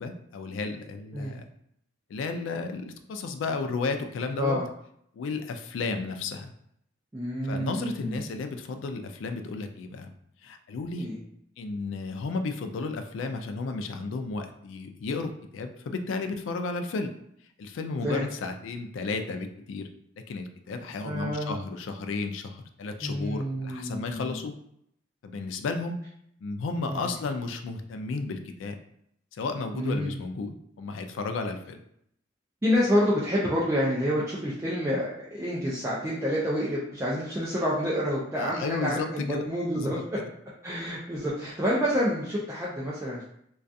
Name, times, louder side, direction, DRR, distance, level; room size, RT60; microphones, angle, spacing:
voice 1, 0.0-1.5 2.1-4.6 5.1-6.5 7.4-10.1 10.4-11.1 11.6-17.1 17.6-19.9 20.3-24.5 25.2-26.0 26.4-28.8 29.3-31.8 38.4-39.4 39.7-39.9 40.2-40.3, left 3 dB, 70° left, 7 dB, 0.3 m, -33 dB
voice 2, 7.1-8.2 10.9-11.2 18.0-18.3 21.0-21.6 23.0-24.4 26.9-27.1 29.7-30.1 32.6-40.0 40.6-43.2, equal, 15° right, -6 dB, 0.3 m, -28 dB
2.3 x 2.3 x 2.5 m, 0.72 s
head